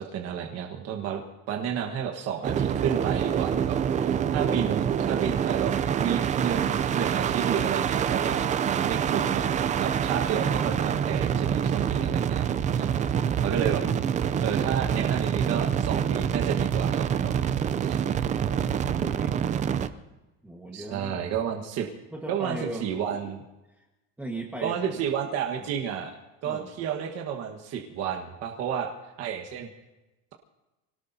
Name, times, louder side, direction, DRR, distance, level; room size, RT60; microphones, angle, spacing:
voice 1, 0.0-5.7 6.0-12.5 12.7-12.9 13.4-13.8 14.4-17.4 17.8-18.0 20.7-21.9 22.3-23.4 24.6-26.1 26.4-28.9 29.2-29.7, right 8 dB, 45° right, 2 dB, 1.4 m, -31 dB
sound 1, 2.4-19.9, right 8 dB, 20° right, 0.4 m, -26 dB
voice 2, 18.4-19.3 20.4-21.2 22.1-22.9 23.7-23.8 24.2-25.0 25.6-25.7 26.4-26.7, right 1 dB, 5° right, -1 dB, 1.4 m, -38 dB
26.0 x 18.0 x 2.7 m, 1.0 s
cardioid pair, 160°, 34 cm